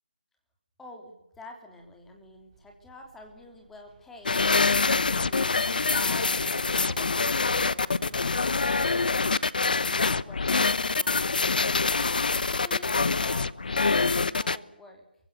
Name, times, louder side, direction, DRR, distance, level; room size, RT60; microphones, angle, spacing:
voice 1, 0.8-15.0, left 1 dB, 5° left, 2 dB, 3.2 m, -48 dB
Run, 1.8-9.7, right 3 dB, 20° right, 5.8 m, -56 dB
sound 1, 4.3-14.6, left 4 dB, 55° left, 1.0 m, -25 dB
27.5 x 24.0 x 6.8 m, 0.85 s
figure-of-eight pair, 165°, 6 cm